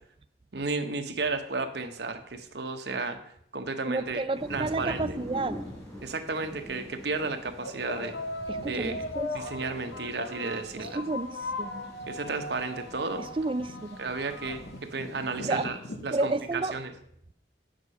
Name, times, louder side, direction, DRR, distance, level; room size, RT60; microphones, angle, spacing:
voice 1, 0.5-3.2 3.5-4.2 4.5-5.0 6.0-8.1 8.5-8.9 9.3-11.0 12.1-13.3 14.0-14.6 14.9-16.9, right 3 dB, 70° right, 1.0 m, -33 dB
voice 2, 3.9-5.6 8.5-9.4 10.8-11.9 13.2-14.0 15.4-15.7 16.1-16.8, right 2 dB, 30° right, 0.3 m, -31 dB
sound 1, 4.3-15.5, equal, 15° left, 3.8 m, -45 dB
sound 2, 5.6-5.7 6.6-6.8 7.6-16.5, left 2 dB, 75° left, 0.9 m, -39 dB
8.7 x 6.4 x 5.5 m
head